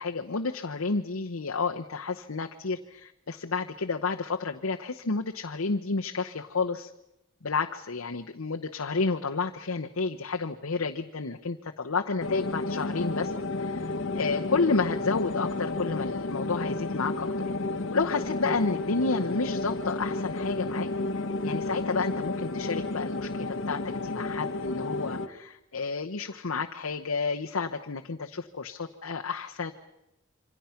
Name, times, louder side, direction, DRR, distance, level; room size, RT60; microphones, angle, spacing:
voice 1, 0.0-6.9 7.4-13.3 13.6-17.3 17.9-20.9 21.2-29.7, left 4 dB, 85° left, 3 dB, 1.0 m, -30 dB
sound 1, 12.2-25.3, left 2 dB, 65° left, 1.3 m, -31 dB
27.5 x 25.0 x 5.8 m, 0.88 s
head